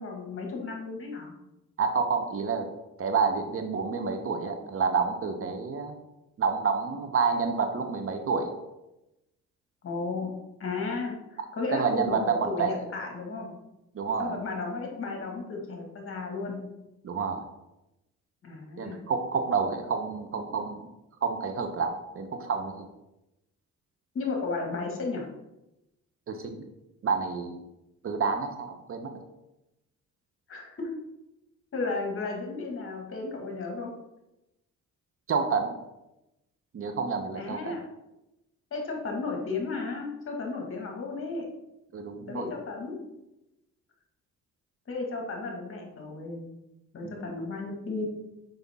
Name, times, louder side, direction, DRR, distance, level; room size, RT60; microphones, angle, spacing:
voice 1, 0.0-1.3 9.8-13.5 14.2-16.6 18.4-19.0 24.1-25.3 30.5-30.9 31.7-33.9 37.4-37.8 38.7-41.5 42.3-43.1 44.9-46.5 46.9-48.2, left 3 dB, 45° left, 1 dB, 1.9 m, -34 dB
voice 2, 1.8-2.7 3.0-5.9 6.4-8.5 11.7-12.7 13.9-14.4 17.0-17.4 18.8-20.8 21.2-22.9 26.3-26.6 27.0-27.6 28.0-29.1 35.3-35.7 36.7-37.8 41.9-42.5 47.0-47.3, right 5 dB, 45° right, 6 dB, 0.9 m, -29 dB
5.6 x 5.3 x 3.6 m, 0.93 s
cardioid pair, 90°, 30 cm